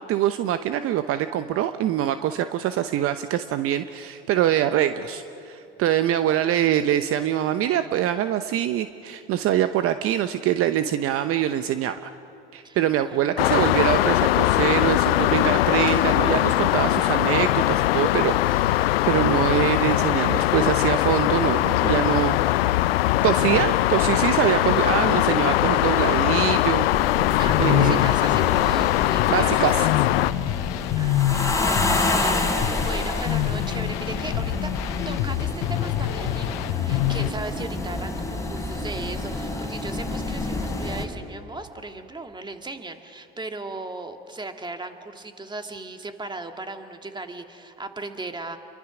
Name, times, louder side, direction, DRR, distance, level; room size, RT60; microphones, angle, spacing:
voice 1, 0.1-12.1 12.5-22.7 23.2-26.9 27.6-28.1 29.3-29.8, right 11 dB, 50° right, 10 dB, 0.9 m, -24 dB
voice 2, 12.6-13.5 27.4-29.9 31.0-34.7 35.1-48.6, right 2 dB, 15° right, 6 dB, 2.1 m, -37 dB
sound 1, 13.4-30.3, left 16 dB, 80° left, 0.6 m, -21 dB
sound 2, 26.9-41.1, left 2 dB, 10° left, 3.7 m, -29 dB
sound 3, 27.3-37.3, left 14 dB, 60° left, 0.9 m, -27 dB
29.0 x 23.0 x 6.1 m, 2.7 s
hypercardioid pair, 80°, 29 cm